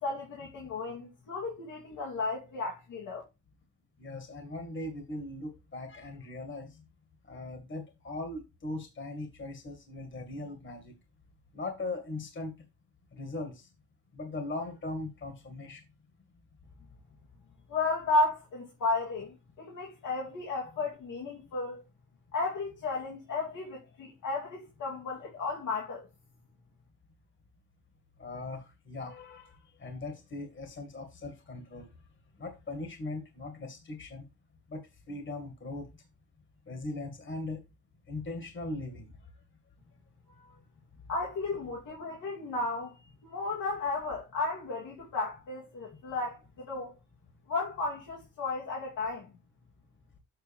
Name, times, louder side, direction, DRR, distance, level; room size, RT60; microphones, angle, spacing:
voice 1, 0.0-3.2 17.7-21.8 22.3-26.1 40.3-40.6 41.1-43.0 43.2-46.9 47.5-49.3, left 3 dB, 75° left, 2.6 m, -33 dB
voice 2, 4.0-6.8 7.3-10.9 11.5-12.5 13.1-13.7 14.1-15.8 28.2-31.9 32.4-34.2 34.7-35.9 36.7-37.6 38.1-39.1, left 2 dB, 40° left, 2.0 m, -39 dB
8.0 x 6.0 x 3.5 m
cardioid pair, 70°, 31 cm